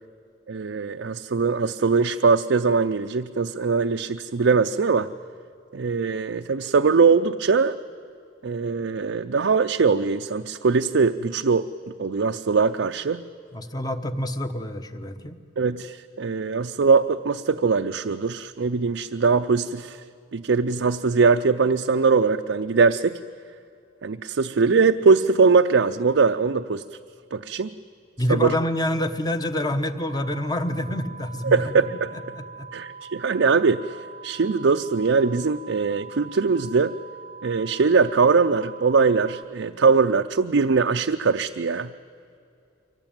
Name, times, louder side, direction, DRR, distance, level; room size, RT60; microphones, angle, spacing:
voice 1, 0.5-5.1 5.7-7.8 8.4-11.7 12.0-13.2 15.6-20.0 20.3-23.2 24.0-26.8 27.3-27.7 28.3-28.5 31.4-32.1 32.7-34.0 34.2-36.9 37.4-41.9, right 4 dB, 85° right, 6 dB, 0.5 m, -21 dB
voice 2, 13.5-15.4 28.2-31.8 32.1-32.7, left 1 dB, 20° left, 9 dB, 1.0 m, -27 dB
sound 1, 30.0-39.4, right 5 dB, 60° left, 1.6 m, -43 dB
24.5 x 18.0 x 8.9 m, 2.6 s
head